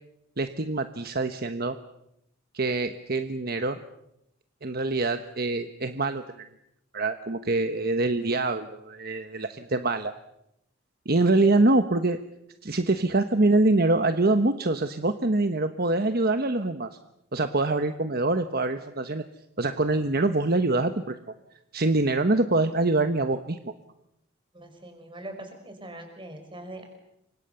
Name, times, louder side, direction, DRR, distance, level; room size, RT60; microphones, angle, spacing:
voice 1, 0.4-1.8 2.5-3.8 4.6-6.2 6.9-10.1 11.0-12.2 12.6-16.9 17.3-19.2 19.6-21.2 21.7-23.7, right 2 dB, 45° right, 9 dB, 1.2 m, -24 dB
voice 2, 24.5-26.9, right 1 dB, 25° right, 5 dB, 5.9 m, -42 dB
30.0 x 25.0 x 7.0 m, 0.81 s
head